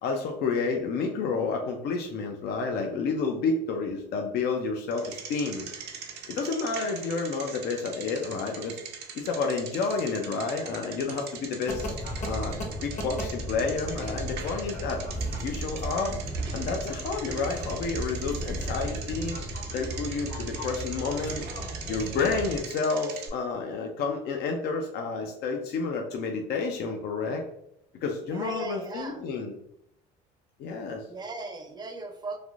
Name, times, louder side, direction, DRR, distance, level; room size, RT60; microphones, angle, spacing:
voice 1, 0.0-5.7 6.3-8.8 9.1-12.0 12.3-15.0 15.4-16.2 16.5-19.4 19.7-21.5 21.8-27.4 28.0-29.5 30.6-31.1, left 4 dB, 60° left, 2 dB, 0.5 m, -30 dB
Bicycle, 4.9-23.3, right 6 dB, 65° right, 0.6 m, -41 dB
sound 1, 11.7-22.6, equal, 40° left, 0.8 m, -35 dB
voice 2, 28.3-29.3 31.1-32.4, right 3 dB, 20° right, 4 dB, 0.6 m, -37 dB
3.3 x 2.5 x 2.4 m, 0.78 s
cardioid pair, 105°, 19 cm